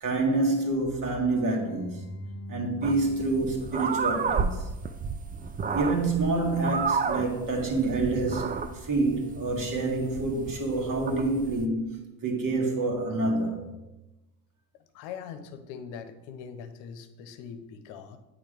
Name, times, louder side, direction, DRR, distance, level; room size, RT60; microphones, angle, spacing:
voice 1, 0.0-2.0 2.5-4.7 5.7-13.8, right 2 dB, 40° right, 1.9 m, -27 dB
sound 1, 1.7-4.9, left 1 dB, 35° left, 0.8 m, -43 dB
sound 2, 2.8-11.7, right 5 dB, 20° right, 0.4 m, -32 dB
voice 2, 14.9-18.2, left 7 dB, 70° left, 0.9 m, -42 dB
8.4 x 3.7 x 5.0 m
hypercardioid pair, 80°, 49 cm